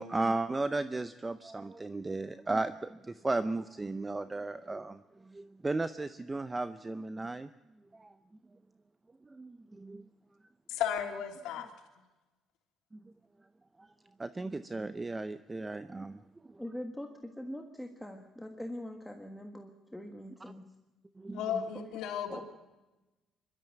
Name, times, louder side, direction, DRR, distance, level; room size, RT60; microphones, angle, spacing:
voice 1, 0.0-7.5 7.9-8.1 9.3-10.0 13.0-13.1 13.8-13.9 14.2-16.2 21.2-21.4, right 2 dB, 15° right, 12 dB, 0.6 m, -35 dB
voice 2, 10.7-11.7 21.3-22.4, left 9 dB, 85° left, 4 dB, 3.1 m, -34 dB
voice 3, 16.6-20.7 22.3-22.4, left 1 dB, 5° left, 3 dB, 1.5 m, -42 dB
24.0 x 12.5 x 9.3 m, 1.1 s
cardioid pair, 125°, 0 cm